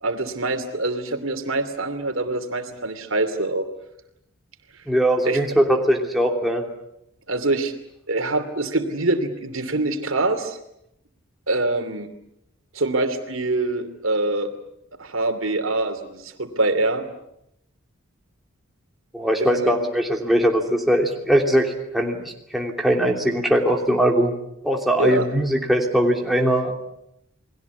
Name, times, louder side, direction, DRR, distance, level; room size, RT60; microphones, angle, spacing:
voice 1, 0.0-3.7 5.2-5.4 7.3-7.7 8.1-10.6 11.5-12.1 12.7-14.5 15.0-17.1 19.4-19.8 25.0-25.3, right 2 dB, 70° right, 7 dB, 2.9 m, -24 dB
voice 2, 4.9-6.6 19.1-24.3 24.6-26.7, equal, ahead, 0 dB, 3.0 m, -20 dB
29.5 x 20.5 x 8.3 m, 0.81 s
head